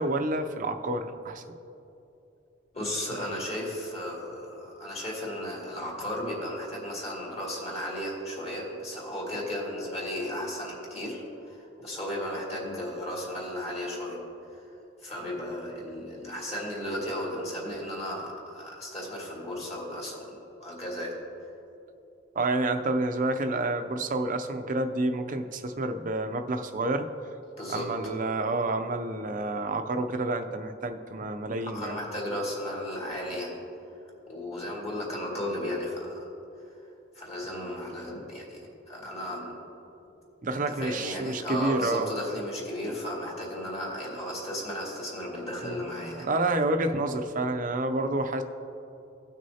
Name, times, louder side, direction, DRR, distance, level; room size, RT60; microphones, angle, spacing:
voice 1, 0.0-1.4 22.4-27.1 27.7-32.0 40.4-42.1 45.6-45.8 46.1-48.4, right 2 dB, 45° right, 7 dB, 0.5 m, -29 dB
voice 2, 2.7-14.2 15.0-21.1 27.6-27.9 31.6-33.6 34.3-36.3 37.1-38.6 38.9-39.6 40.7-46.3, left 1 dB, 35° left, -3 dB, 2.2 m, -35 dB
17.0 x 6.2 x 2.8 m, 2.8 s
head